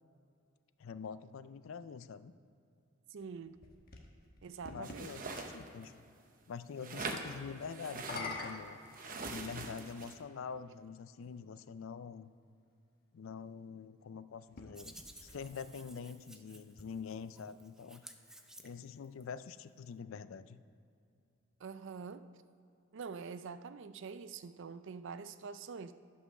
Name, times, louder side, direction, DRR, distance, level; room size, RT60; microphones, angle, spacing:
voice 1, 0.8-2.3 4.7-5.9 6.5-8.8 9.3-12.3 13.1-14.9 15.2-18.0 18.6-20.6, left 6 dB, 70° left, 14 dB, 0.4 m, -45 dB
voice 2, 3.1-3.6 4.4-5.2 21.6-22.2 22.9-25.9, right 5 dB, 60° right, 13 dB, 0.4 m, -45 dB
sound 1, 3.2-5.1 7.9-9.7 10.6-10.7 14.4-16.0, left 3 dB, 45° left, 1.2 m, -46 dB
sound 2, 4.8-5.9 6.8-8.5 8.9-10.1, right 3 dB, 40° right, 0.8 m, -43 dB
Hands, 14.7-19.2, right 1 dB, 5° right, 0.5 m, -56 dB
11.0 x 5.5 x 6.4 m, 2.5 s
head